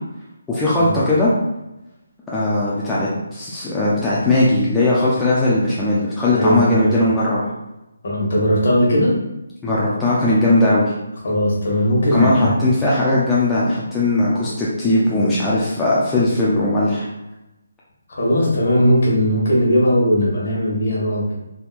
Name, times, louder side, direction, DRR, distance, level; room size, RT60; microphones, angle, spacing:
voice 1, 0.5-1.3 2.3-7.5 9.6-10.9 12.1-17.1, left 2 dB, 10° left, -8 dB, 0.4 m, -18 dB
voice 2, 6.3-6.9 8.0-9.2 11.2-12.6 18.1-21.3, equal, 55° left, -4 dB, 1.4 m, -18 dB
3.5 x 2.8 x 2.4 m, 0.95 s
hypercardioid pair, 165°, 0 cm